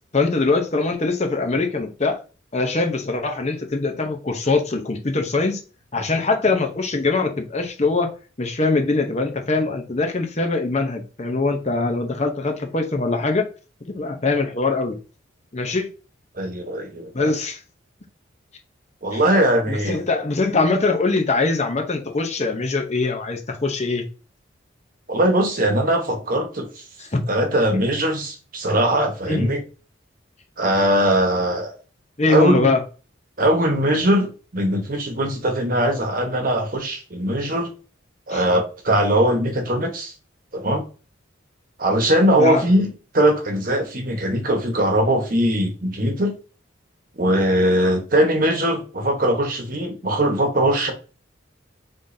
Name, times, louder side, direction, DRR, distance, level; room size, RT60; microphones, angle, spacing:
voice 1, 0.1-2.2 2.5-5.6 5.9-8.1 8.4-13.5 13.9-15.0 15.5-15.9 17.1-17.6 19.1-19.2 19.7-24.1 27.0-27.2 29.3-29.5 32.2-32.8 38.3-38.4 42.4-42.6, left 3 dB, 35° left, 0.8 m, -22 dB
voice 2, 16.4-17.3 19.0-20.0 25.1-26.7 27.3-29.6 30.6-31.7 32.3-32.7 33.4-37.7 38.3-40.1 40.5-40.8 41.8-46.3 47.2-50.9, right 1 dB, 45° right, 1.1 m, -20 dB
5.1 x 3.8 x 2.7 m
head